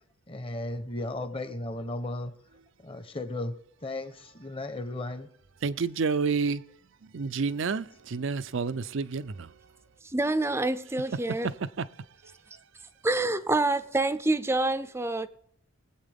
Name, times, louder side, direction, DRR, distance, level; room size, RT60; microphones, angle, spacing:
voice 1, 0.3-2.3 2.8-5.3, left 2 dB, 25° left, 0.9 m, -35 dB
voice 2, 5.6-6.6 7.1-9.5 11.4-11.5 11.8-11.9 12.2-12.3, right 5 dB, 60° right, 0.5 m, -29 dB
voice 3, 10.0-11.5 13.0-15.3, right 2 dB, 10° right, 0.5 m, -27 dB
22.5 x 8.3 x 3.5 m
head